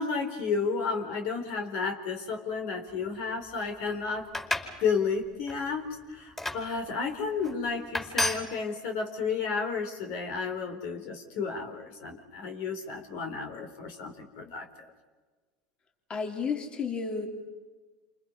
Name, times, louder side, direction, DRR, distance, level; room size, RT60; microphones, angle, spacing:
voice 1, 0.0-4.3 4.8-14.9, left 5 dB, 65° left, 5 dB, 4.1 m, -32 dB
sound 1, 4.2-4.8 5.2-5.6 6.4-6.6 7.4-7.5 7.9-8.4, left 1 dB, 15° left, 4.9 m, -30 dB
voice 2, 16.1-17.3, left 5 dB, 30° left, 3 dB, 3.7 m, -32 dB
29.5 x 28.0 x 5.6 m, 1.3 s
hypercardioid pair, 85°, 3 cm